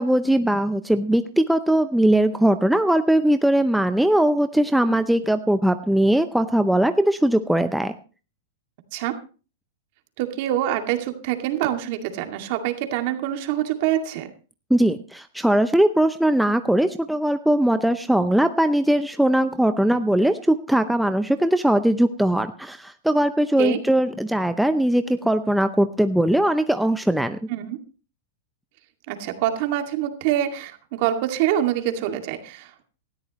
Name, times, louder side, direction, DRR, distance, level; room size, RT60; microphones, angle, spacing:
voice 1, 0.0-7.9 14.7-27.4, right 1 dB, ahead, 9 dB, 0.6 m, -20 dB
voice 2, 10.2-14.3 23.6-23.8 27.5-27.8 29.1-32.8, right 11 dB, 55° right, 5 dB, 2.3 m, -25 dB
18.5 x 13.0 x 3.1 m, 0.36 s
hypercardioid pair, 135°, 0 cm